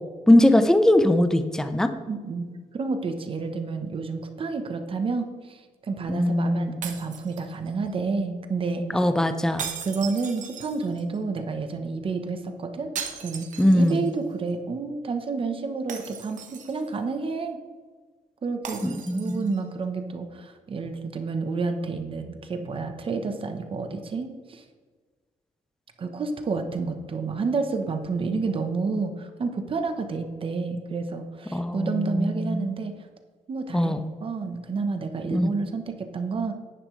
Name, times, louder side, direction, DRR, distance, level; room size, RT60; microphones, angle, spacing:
voice 1, 0.3-1.9 6.1-6.8 8.9-9.7 13.6-14.0 18.8-19.6 31.5-32.7 33.7-34.0 35.3-35.5, left 1 dB, 5° left, 8 dB, 0.6 m, -21 dB
voice 2, 2.1-2.5 2.7-9.0 9.8-12.9 13.2-13.5 13.7-17.6 18.4-18.8 19.1-24.6 26.0-32.9 33.5-33.9 34.2-36.5, right 4 dB, 40° right, 6 dB, 1.0 m, -30 dB
sound 1, 6.8-7.9 9.6-11.2 13.0-14.2 14.5-14.6 15.9-17.0 18.6-19.6, right 7 dB, 65° right, 1.1 m, -38 dB
10.0 x 9.8 x 3.2 m, 1.4 s
wide cardioid pair, 145°, 14 cm